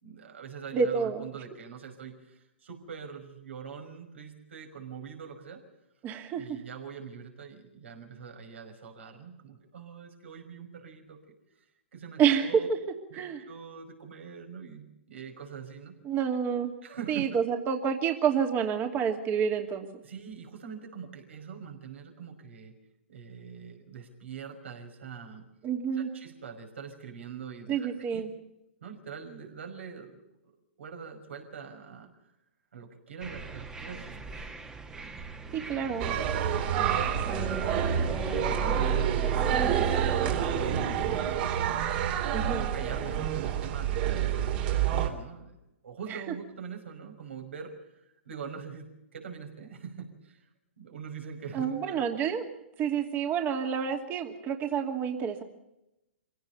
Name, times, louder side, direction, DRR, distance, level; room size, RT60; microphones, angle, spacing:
voice 1, 0.0-5.6 6.3-11.6 11.9-12.7 13.1-16.0 16.8-17.3 20.0-22.8 23.1-25.5 25.9-28.2 28.8-30.5 30.8-32.1 32.7-36.0 36.6-37.2 37.5-39.5 40.0-41.5 42.2-44.3 44.9-45.5 45.8-50.5 50.8-52.1, right 6 dB, 70° right, 4 dB, 5.6 m, -44 dB
voice 2, 0.7-1.2 6.0-6.4 12.2-12.6 13.2-13.4 16.1-16.7 17.1-19.9 25.6-26.1 27.7-28.3 35.5-36.2 42.3-42.7 51.5-52.4 52.8-55.4, right 7 dB, 30° right, 4 dB, 2.5 m, -28 dB
sound 1, 33.2-41.2, right 4 dB, 10° right, 1.7 m, -36 dB
sound 2, 36.0-45.1, right 9 dB, 50° right, 3.6 m, -28 dB
26.0 x 17.0 x 6.9 m, 0.89 s
hypercardioid pair, 120°, 7 cm